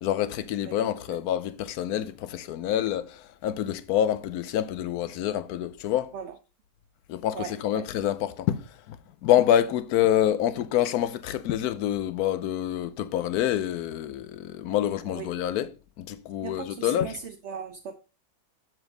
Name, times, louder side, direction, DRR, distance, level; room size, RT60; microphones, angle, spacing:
voice 1, 0.0-6.1 7.1-9.0 9.2-15.7 16.0-17.2, left 11 dB, 80° left, 1.2 m, -27 dB
voice 2, 16.4-17.1 17.4-17.9, right 7 dB, 60° right, 0.8 m, -36 dB
7.0 x 6.1 x 3.9 m
omnidirectional pair, 1.6 m